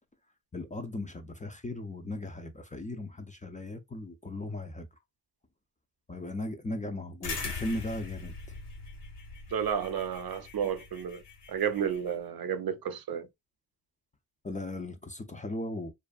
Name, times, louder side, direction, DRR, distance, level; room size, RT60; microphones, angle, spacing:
voice 1, 0.5-4.9 6.1-8.3 14.4-15.9, left 1 dB, 20° left, 0.3 m, -37 dB
sound 1, 7.2-12.1, left 4 dB, 85° left, 0.9 m, -41 dB
voice 2, 9.5-11.2 11.5-13.3, right 8 dB, 65° right, 0.5 m, -32 dB
2.5 x 2.2 x 2.2 m
cardioid pair, 60°, 40 cm